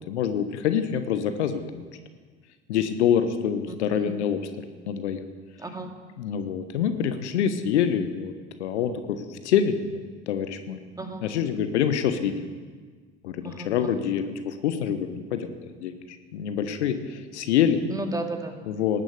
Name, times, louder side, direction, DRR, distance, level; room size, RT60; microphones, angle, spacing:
voice 1, 0.1-1.8 2.7-4.4 4.9-5.2 6.2-8.3 8.6-10.8 11.2-12.4 13.2-15.5 15.8-17.8 18.7-19.0, left 8 dB, 70° left, 10 dB, 1.2 m, -26 dB
voice 2, 3.7-4.2 5.6-5.9 11.0-11.3 13.4-14.0 17.9-18.6, right 2 dB, 10° right, 4 dB, 2.1 m, -34 dB
19.0 x 10.5 x 6.6 m, 1.5 s
figure-of-eight pair, 65°, 36 cm